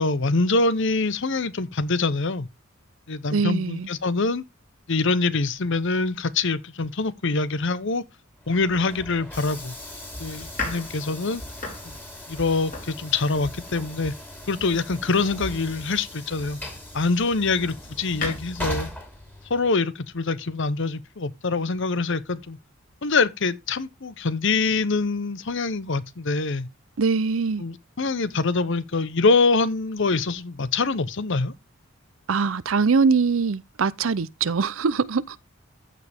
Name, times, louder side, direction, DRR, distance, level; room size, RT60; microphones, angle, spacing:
voice 1, 0.0-2.5 3.1-4.4 4.9-8.0 8.5-9.7 10.2-11.4 11.8-11.9 12.3-14.1 14.5-16.6 16.9-18.9 19.5-22.6 23.0-26.7 27.6-31.5, left 3 dB, 65° left, 0.9 m, -24 dB
voice 2, 3.3-3.9 27.0-27.6 32.3-35.4, right 5 dB, 75° right, 0.6 m, -22 dB
Train / Sliding door, 8.4-19.8, left 1 dB, 10° left, 2.9 m, -39 dB
Domestic sounds home sounds, 8.5-16.7 17.2-18.4, left 3 dB, 45° left, 5.6 m, -38 dB
14.5 x 5.1 x 3.5 m
head